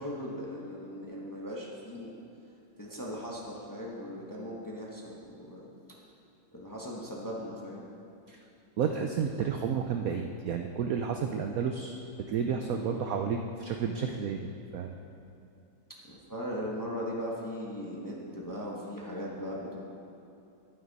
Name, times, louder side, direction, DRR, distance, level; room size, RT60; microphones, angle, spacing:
voice 1, 0.0-2.2 2.8-5.6 6.5-7.9 12.7-13.0 16.1-19.8, equal, 15° left, -3 dB, 0.8 m, -38 dB
voice 2, 8.8-11.9 12.3-14.9, right 6 dB, 90° right, 4 dB, 0.7 m, -31 dB
12.0 x 9.1 x 4.1 m, 2.7 s
omnidirectional pair, 2.1 m